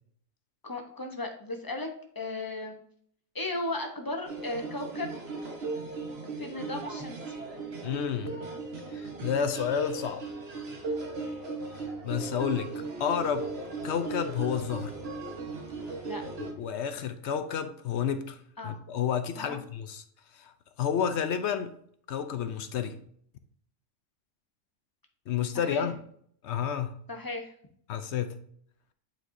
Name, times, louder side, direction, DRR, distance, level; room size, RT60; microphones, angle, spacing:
voice 1, 0.6-1.9 2.1-2.8 3.3-5.1 6.4-7.2 16.0-16.2 18.6-18.8 19.4-19.6 25.5-25.9 27.1-27.5, left 2 dB, 20° left, 0.9 m, -35 dB
sound 1, 4.2-16.5, right 3 dB, 55° right, 1.3 m, -37 dB
sound 2, 6.5-16.6, right 1 dB, 30° right, 1.7 m, -53 dB
voice 2, 7.8-8.4 8.9-10.2 12.0-12.7 13.0-13.5 13.8-14.9 16.4-18.4 18.6-20.0 20.3-20.5 20.8-21.7 22.1-23.0 25.3-25.9 26.4-27.0 27.9-28.4, left 8 dB, 65° left, 0.8 m, -30 dB
8.4 x 4.5 x 2.7 m
omnidirectional pair, 1.3 m